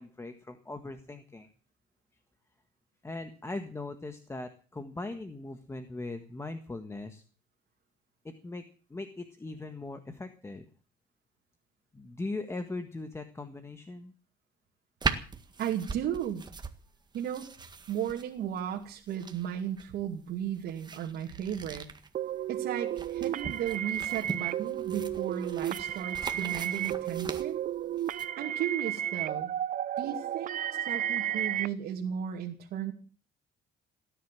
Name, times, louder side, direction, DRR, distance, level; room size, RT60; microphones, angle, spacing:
voice 1, 0.0-1.5 3.0-7.2 8.2-8.6 8.9-10.7 11.9-14.1 29.9-30.0 30.5-30.7 31.1-31.2, left 2 dB, 15° left, 8 dB, 1.6 m, -40 dB
sound 1, 15.0-28.3, right 4 dB, 25° right, 1.8 m, -40 dB
voice 2, 15.6-16.4 17.1-17.5 17.9-21.9 22.5-27.6 28.4-29.5 30.0-30.6 30.9-32.9, right 9 dB, 70° right, -1 dB, 2.6 m, -35 dB
sound 2, 22.1-31.7, right 11 dB, 50° right, 0.7 m, -33 dB
18.0 x 10.0 x 7.6 m, 0.40 s
cardioid pair, 110°, 17 cm